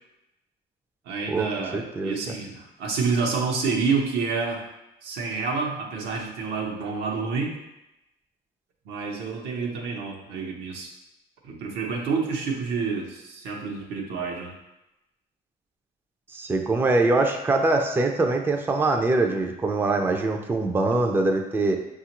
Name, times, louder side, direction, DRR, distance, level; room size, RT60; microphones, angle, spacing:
voice 1, 1.1-4.6 5.0-7.6 8.9-10.9 11.4-14.5, right 4 dB, 85° right, 0 dB, 0.8 m, -28 dB
voice 2, 1.7-2.3 16.3-21.8, right 2 dB, 15° right, 3 dB, 0.4 m, -23 dB
5.7 x 2.4 x 2.9 m, 0.91 s
cardioid pair, 110°, 17 cm